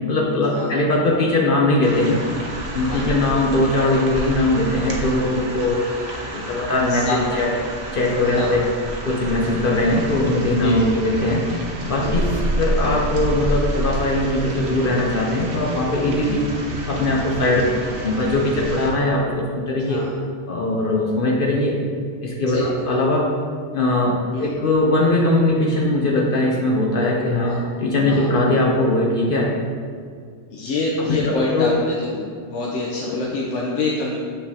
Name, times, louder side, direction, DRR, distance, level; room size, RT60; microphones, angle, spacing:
voice 1, 0.1-2.2 2.7-5.8 6.3-7.5 7.9-8.7 9.0-16.4 16.9-17.6 18.0-20.0 20.5-21.8 22.2-23.3 23.7-29.5 31.0-31.7, left 2 dB, 55° left, -1 dB, 0.8 m, -20 dB
sound 1, 1.8-18.9, right 1 dB, 65° right, 1.1 m, -29 dB
voice 2, 6.9-7.4 8.2-8.5 10.6-10.9 12.0-12.3 19.9-20.1 22.5-22.7 24.3-24.5 27.3-27.6 28.1-28.3 30.5-32.2 32.5-34.2, left 3 dB, 80° left, -3 dB, 1.0 m, -26 dB
6.6 x 5.5 x 2.7 m, 2.1 s
omnidirectional pair, 1.2 m